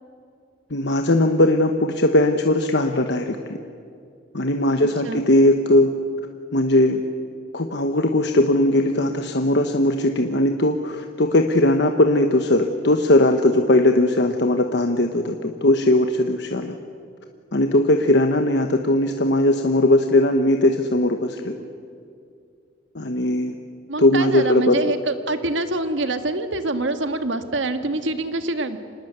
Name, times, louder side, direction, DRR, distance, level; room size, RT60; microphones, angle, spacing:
voice 1, 0.7-3.4 4.3-5.9 6.5-7.0 7.5-16.7 17.5-21.5 22.9-23.5 24.0-24.9, left 1 dB, 65° left, 5 dB, 1.1 m, -19 dB
voice 2, 23.9-28.8, right 2 dB, 85° right, 8 dB, 1.6 m, -25 dB
26.5 x 19.5 x 8.1 m, 2.4 s
head